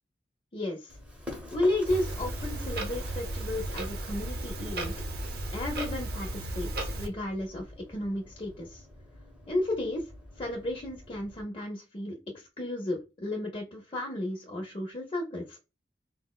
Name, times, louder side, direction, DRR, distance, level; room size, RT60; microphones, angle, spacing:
voice 1, 0.5-0.9 1.5-4.9 5.5-8.8 9.5-10.1 10.4-15.6, left 1 dB, 30° left, -1 dB, 0.6 m, -33 dB
Run, 0.9-11.4, left 1 dB, 5° right, 0.8 m, -47 dB
Clock, 1.8-7.1, right 1 dB, 60° right, 0.6 m, -35 dB
3.8 x 2.0 x 2.2 m, 0.27 s
head